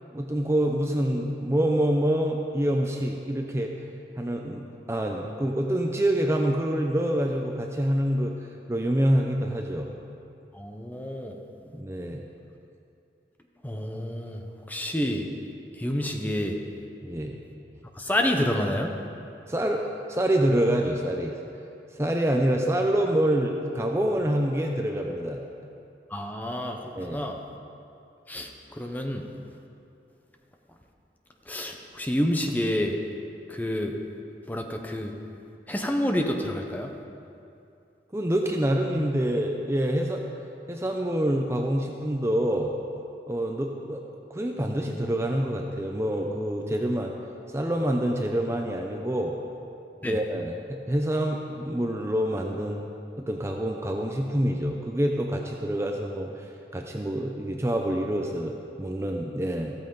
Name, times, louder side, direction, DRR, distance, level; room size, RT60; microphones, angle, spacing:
voice 1, 0.1-3.7 4.2-8.3 8.7-9.9 11.7-12.2 17.0-17.4 19.5-21.4 21.9-25.4 27.0-27.3 38.1-40.2 40.7-42.7 43.3-44.0 44.3-47.1 47.5-49.4 50.0-52.8 53.2-56.5 56.7-59.7, right 1 dB, 15° right, 2 dB, 0.6 m, -26 dB
voice 2, 10.5-11.3 13.6-14.4 14.7-15.3 15.7-16.6 18.0-18.9 26.1-27.4 28.3-29.2 31.5-33.0 33.5-33.9 34.5-35.1 35.7-36.9 50.0-50.2, left 1 dB, 10° left, 2 dB, 0.8 m, -28 dB
14.5 x 14.0 x 3.9 m, 2.6 s
head